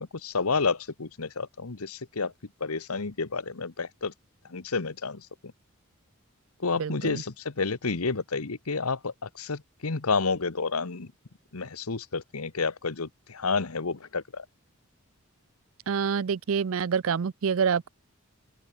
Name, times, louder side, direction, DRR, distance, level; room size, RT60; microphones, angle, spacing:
voice 1, 0.0-2.3 2.6-4.1 4.5-5.3 6.6-11.1 11.5-14.4, left 4 dB, 90° left, 1.2 m, -30 dB
voice 2, 6.8-7.2 15.9-17.9, right 6 dB, 70° right, 0.4 m, -27 dB
open air
head